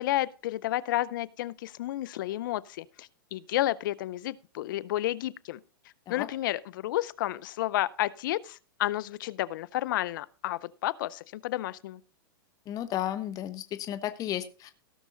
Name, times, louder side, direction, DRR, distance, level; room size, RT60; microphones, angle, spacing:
voice 1, 0.0-5.6 6.1-12.0, left 15 dB, 65° left, 0.6 m, -31 dB
voice 2, 12.7-14.7, left 12 dB, 30° left, 0.9 m, -33 dB
17.0 x 6.1 x 3.9 m
hypercardioid pair, 120°, 12 cm